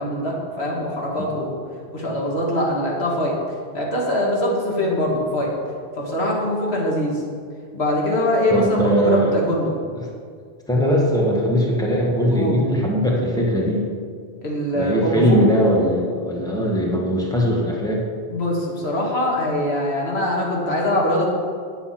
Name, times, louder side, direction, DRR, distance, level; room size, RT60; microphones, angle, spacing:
voice 1, 0.0-1.6 1.9-3.3 3.7-5.5 6.0-7.2 7.7-9.7 12.3-12.6 14.4-15.4 18.3-21.3, left 1 dB, 90° left, -3 dB, 2.4 m, -23 dB
voice 2, 8.5-9.3 10.0-10.1 10.7-13.8 14.7-18.0, equal, 5° left, -3 dB, 1.7 m, -20 dB
9.5 x 8.3 x 5.9 m, 2.1 s
omnidirectional pair, 1.0 m